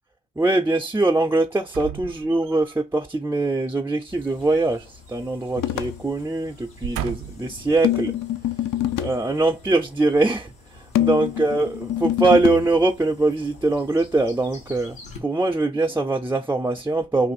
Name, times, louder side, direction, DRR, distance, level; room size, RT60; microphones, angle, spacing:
voice 1, 0.4-8.1 9.0-17.3, right 2 dB, 5° right, 0.3 m, -22 dB
sound 1, 1.7-2.8 4.4-5.5 5.8-6.0 6.6-7.6 8.2-8.3, right 11 dB, 65° right, 0.5 m, -35 dB
sound 2, 4.1-15.2, left 3 dB, 80° left, 1.1 m, -47 dB
sound 3, 5.6-6.0 7.8-9.2 10.9-12.7, left 12 dB, 60° left, 0.4 m, -25 dB
2.5 x 2.5 x 4.1 m
supercardioid pair, 55°, 35 cm